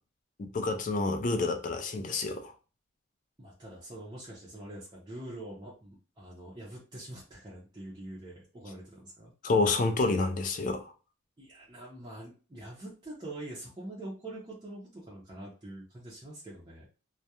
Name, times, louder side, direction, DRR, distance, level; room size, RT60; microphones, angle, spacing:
voice 1, 0.4-2.5 9.4-10.9, left 3 dB, 40° left, 0.3 m, -28 dB
voice 2, 3.4-9.3 11.4-16.9, right 1 dB, 20° right, 0.6 m, -44 dB
2.3 x 2.1 x 2.8 m
head